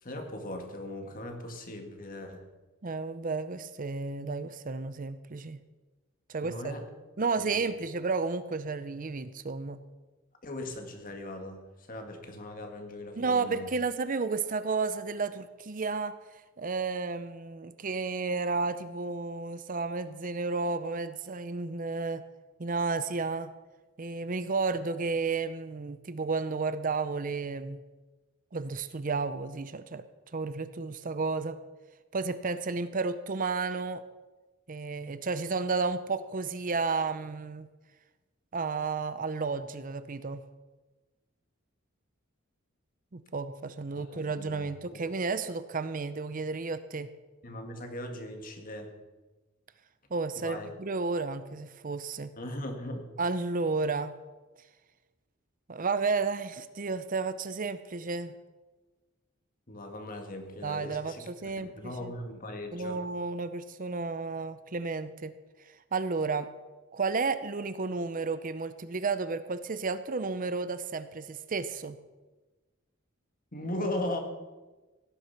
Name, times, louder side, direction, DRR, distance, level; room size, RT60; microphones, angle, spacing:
voice 1, 0.0-2.4 6.4-6.8 7.4-7.7 10.4-11.6 11.9-13.7 44.0-45.0 47.4-48.9 50.4-50.7 52.4-53.1 59.7-63.0 73.5-74.2, left 1 dB, 40° left, 4 dB, 2.1 m, -39 dB
voice 2, 2.8-5.6 6.3-6.7 7.2-9.8 13.2-16.2 16.6-22.2 22.6-23.5 24.0-27.8 28.5-30.0 30.3-31.6 32.1-34.0 34.7-37.7 38.5-40.4 43.1-47.1 50.1-52.3 53.2-54.1 55.7-58.3 60.6-62.1 62.7-65.3 65.9-66.5 66.9-72.0, right 4 dB, 40° right, 13 dB, 0.6 m, -32 dB
17.0 x 9.9 x 5.8 m, 1.2 s
head